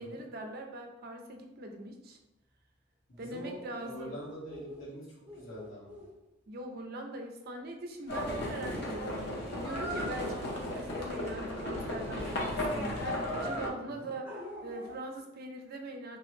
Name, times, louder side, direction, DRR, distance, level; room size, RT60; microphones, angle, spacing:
voice 1, 0.0-2.2 3.2-4.1 6.5-14.4 14.6-16.2, right 1 dB, 50° right, 4 dB, 0.4 m, -42 dB
voice 2, 3.1-5.1 5.3-6.0 14.0-14.1, equal, 80° left, -6 dB, 1.2 m, -44 dB
sound 1, 3.2-3.3 3.5-3.6 3.9-4.8 5.3-6.1 9.6-10.2 13.2-13.7 14.3-15.1, equal, 10° right, 0.6 m, -42 dB
Livestock farm animals working animals, 8.1-13.7, left 1 dB, 55° left, 0.8 m, -35 dB
3.4 x 2.0 x 3.0 m, 0.95 s
head